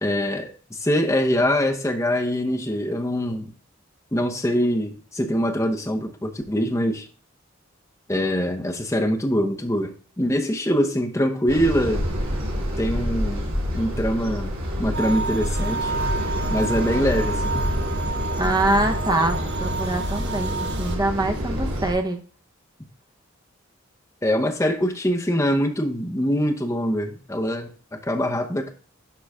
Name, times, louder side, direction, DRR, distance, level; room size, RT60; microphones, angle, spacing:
voice 1, 0.0-3.5 4.1-7.1 8.1-12.0 12.8-15.9 16.5-17.6 24.2-27.7 28.0-28.7, equal, 15° left, 0.9 m, -24 dB
sound 1, 11.5-21.9, equal, 80° right, 2.8 m, -27 dB
sound 2, 14.9-21.0, right 4 dB, 55° right, 1.2 m, -31 dB
voice 2, 18.4-22.2, right 2 dB, 20° right, 0.9 m, -24 dB
11.5 x 4.0 x 3.6 m
head